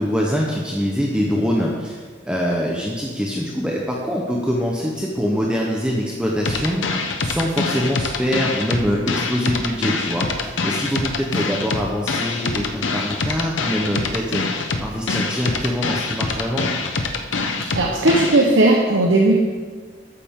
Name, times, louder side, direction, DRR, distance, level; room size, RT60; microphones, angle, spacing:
voice 1, 0.0-6.8 7.2-16.7, equal, 5° right, -3 dB, 0.9 m, -24 dB
sound 1, 6.5-18.5, left 3 dB, 85° left, 0.9 m, -25 dB
voice 2, 17.7-19.4, right 2 dB, 90° right, -1 dB, 1.1 m, -16 dB
12.5 x 9.0 x 3.7 m, 1.5 s
head